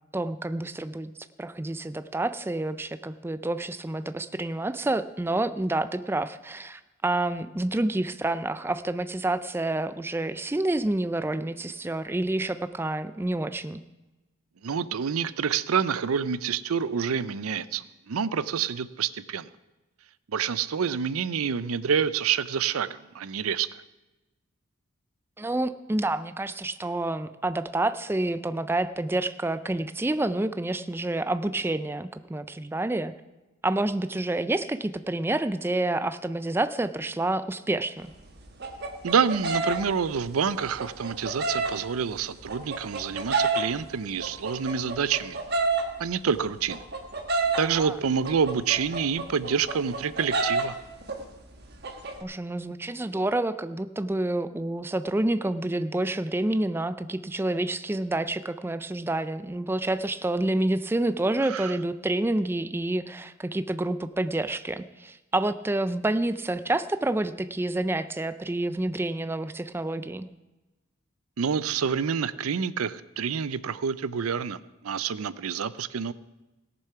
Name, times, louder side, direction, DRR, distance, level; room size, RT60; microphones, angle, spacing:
voice 1, 0.1-1.1 1.4-13.8 25.4-33.1 33.6-38.1 47.5-48.0 52.2-70.3, right 2 dB, 10° right, 11 dB, 0.3 m, -28 dB
voice 2, 14.6-19.5 20.3-23.7 39.0-45.4 46.0-46.9 47.6-50.8 61.4-61.7 71.4-74.6 74.8-76.1, right 6 dB, 85° right, 16 dB, 0.5 m, -27 dB
sound 1, 38.0-41.7 42.2-43.9 44.2-47.7 48.2-50.7 51.0-51.4 51.6-52.2, right 3 dB, 50° right, 1.4 m, -28 dB
17.5 x 7.0 x 5.7 m, 1.1 s
head